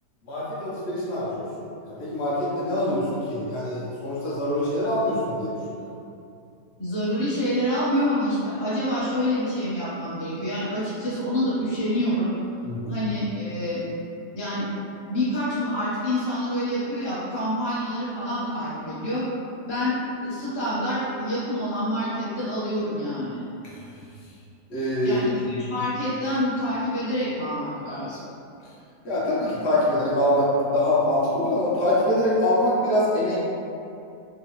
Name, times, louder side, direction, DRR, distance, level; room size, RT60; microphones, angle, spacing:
voice 1, 0.3-5.9 12.6-13.0 24.7-25.2 29.0-33.4, left 1 dB, 50° left, -8 dB, 0.9 m, -24 dB
voice 2, 6.8-12.3 12.9-13.8 14.3-14.7 15.0-19.2 19.7-20.0 20.2-23.4 25.0-28.2, equal, 25° left, -12 dB, 0.6 m, -27 dB
3.7 x 2.3 x 2.9 m, 2.6 s
omnidirectional pair, 1.8 m